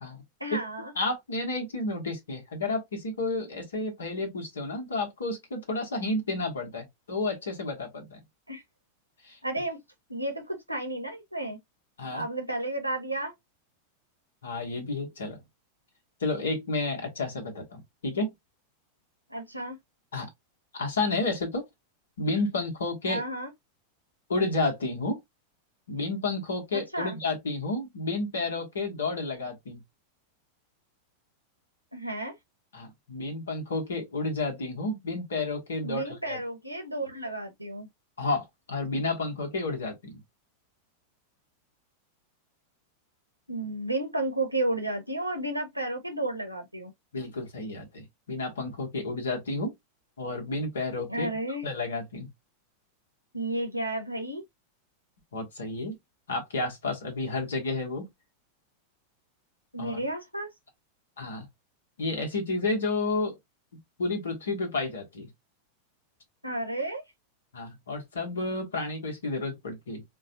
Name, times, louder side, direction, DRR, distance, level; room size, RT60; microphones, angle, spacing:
voice 1, 0.4-0.9 8.5-8.6 9.4-9.8 10.1-11.6 12.1-13.3 19.3-19.8 23.1-23.5 26.7-27.2 31.9-32.4 35.8-37.9 43.5-46.9 51.1-51.7 53.3-54.4 59.7-60.5 66.4-67.0, right 1 dB, 90° right, 1.0 m, -32 dB
voice 2, 0.9-8.2 9.2-9.4 12.0-12.2 14.4-15.4 16.2-18.3 20.1-20.3 20.7-21.6 22.2-23.2 24.3-25.2 25.9-29.8 32.7-36.4 38.2-40.2 47.1-49.7 50.2-51.3 51.6-52.3 55.3-56.0 56.3-58.1 59.8-60.0 61.2-61.5 62.0-63.3 64.0-65.3 67.5-70.0, left 2 dB, 70° left, 1.3 m, -31 dB
4.6 x 2.4 x 2.7 m
figure-of-eight pair, 90°, 0 cm